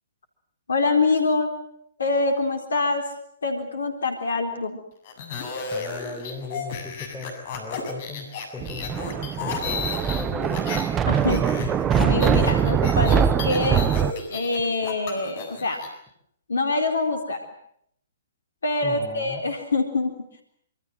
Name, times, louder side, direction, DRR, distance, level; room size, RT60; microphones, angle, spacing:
voice 1, 0.7-1.5 2.0-3.1 3.4-4.8 11.1-13.9 14.3-15.8 16.5-17.4 18.6-20.2, left 3 dB, 75° left, 6 dB, 3.9 m, -25 dB
sound 1, 5.1-10.9 11.2-15.9, left 5 dB, 50° left, 7.2 m, -34 dB
voice 2, 5.7-8.3 8.5-8.9 9.4-10.7 18.8-19.4, left 4 dB, 10° left, 0 dB, 6.4 m, -37 dB
Thunder, 8.6-14.1, right 8 dB, 20° right, 1.3 m, -22 dB
26.5 x 24.5 x 7.7 m, 0.68 s
figure-of-eight pair, 125°, 0 cm